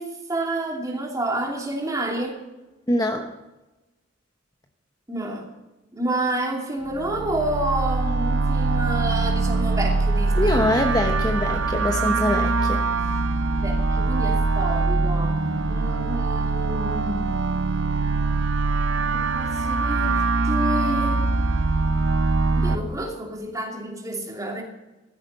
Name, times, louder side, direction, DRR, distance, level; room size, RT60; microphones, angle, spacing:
voice 1, 0.0-2.4 5.1-5.5 5.9-10.6 13.5-17.3 19.1-21.3 22.5-24.6, right 1 dB, 20° right, 0 dB, 2.8 m, -29 dB
voice 2, 2.9-3.3 10.3-12.8, left 1 dB, 20° left, 4 dB, 0.9 m, -23 dB
sound 1, 6.9-22.8, right 3 dB, 80° right, 0.8 m, -23 dB
15.5 x 13.0 x 5.5 m, 1.1 s
head